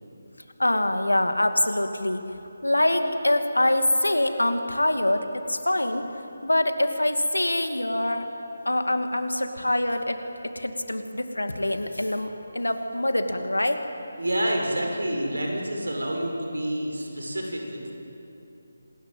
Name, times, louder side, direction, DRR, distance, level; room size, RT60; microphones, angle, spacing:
voice 1, 0.6-2.3 2.6-6.1 6.4-8.3 8.6-13.8, left 1 dB, 80° left, 7 dB, 2.4 m, -24 dB
voice 2, 14.2-17.9, right 1 dB, 70° right, 1 dB, 6.4 m, -28 dB
27.0 x 20.5 x 9.3 m, 2.9 s
figure-of-eight pair, 155°, 0 cm